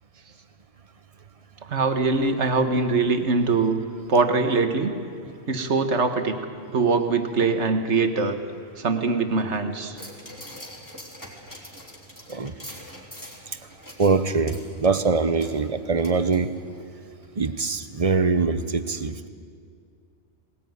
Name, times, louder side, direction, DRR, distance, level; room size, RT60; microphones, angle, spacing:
voice 1, 1.7-3.8 4.1-4.9 5.5-6.4 6.7-8.4 8.8-10.0, right 4 dB, 70° right, 7 dB, 1.8 m, -22 dB
sound 1, 10.0-16.8 17.2-17.3, equal, 15° left, 3.4 m, -44 dB
voice 2, 14.0-16.5 17.4-19.3, right 4 dB, 35° right, 12 dB, 0.9 m, -23 dB
20.0 x 18.5 x 9.5 m, 2.3 s
omnidirectional pair, 1.2 m